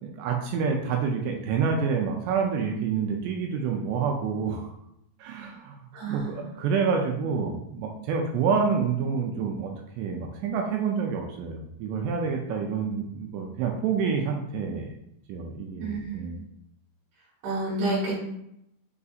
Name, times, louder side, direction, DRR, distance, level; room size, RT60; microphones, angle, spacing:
voice 1, 0.0-4.7 5.2-5.8 6.1-14.9 15.3-16.4, right 5 dB, 85° right, 1 dB, 2.5 m, -28 dB
voice 2, 5.9-6.6 15.8-16.2 17.4-18.2, right 2 dB, 65° right, -6 dB, 3.1 m, -30 dB
6.8 x 2.6 x 2.4 m, 0.78 s
omnidirectional pair, 5.2 m